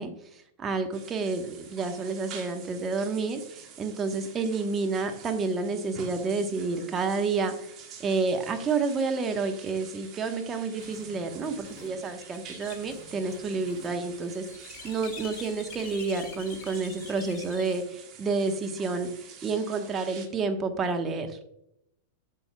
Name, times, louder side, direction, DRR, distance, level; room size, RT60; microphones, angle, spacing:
voice 1, 0.0-7.7 8.0-14.4 14.8-21.3, right 4 dB, 25° right, 6 dB, 1.1 m, -30 dB
sound 1, 0.9-20.3, right 7 dB, 40° right, 1.3 m, -48 dB
sound 2, 10.8-17.7, left 6 dB, 45° left, 2.1 m, -47 dB
8.1 x 7.4 x 2.2 m, 0.78 s
hypercardioid pair, 100°, 0 cm